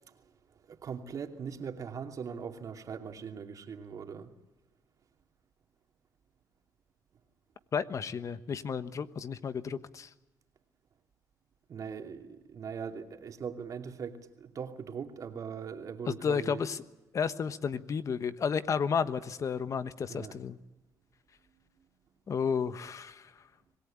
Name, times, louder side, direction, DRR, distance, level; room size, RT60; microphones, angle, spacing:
voice 1, 0.7-4.3 11.7-16.7 20.1-20.4, right 6 dB, 55° right, 2.7 m, -40 dB
voice 2, 7.7-10.1 16.1-16.8 17.1-20.6 22.3-23.3, left 6 dB, 50° left, 1.2 m, -32 dB
26.0 x 18.5 x 8.8 m
cardioid pair, 80°, 7 cm